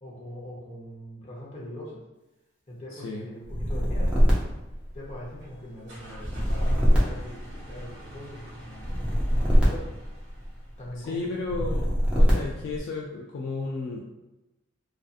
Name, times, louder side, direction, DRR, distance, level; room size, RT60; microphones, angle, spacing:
voice 1, 0.0-2.1 2.7-4.2 4.9-9.9 10.8-11.8, equal, 30° left, -5 dB, 0.7 m, -42 dB
voice 2, 2.9-3.3 11.0-11.9 12.1-14.0, left 3 dB, 65° left, -1 dB, 0.3 m, -33 dB
sound 1, 3.4-5.4 6.1-8.1 8.8-10.7 11.4-12.8, equal, 5° right, 0.5 m, -23 dB
sound 2, 5.4-11.0, right 1 dB, 55° right, 0.8 m, -46 dB
2.6 x 2.4 x 2.4 m, 1.0 s
head